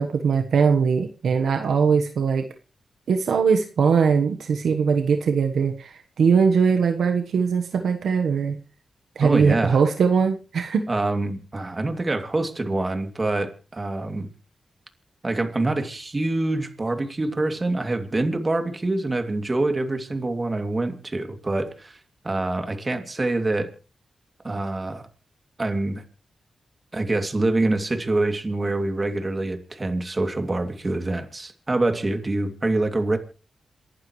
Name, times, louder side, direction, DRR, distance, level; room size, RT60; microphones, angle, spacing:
voice 1, 0.0-2.5 3.1-8.6 9.2-10.8, right 6 dB, 80° right, 6 dB, 1.2 m, -21 dB
voice 2, 9.2-9.8 10.9-14.3 15.2-22.0 22.2-23.7 24.4-25.0 25.6-26.0 26.9-33.2, right 2 dB, 35° right, 6 dB, 2.6 m, -25 dB
28.0 x 11.5 x 3.2 m, 0.33 s
cardioid pair, 55°, 0 cm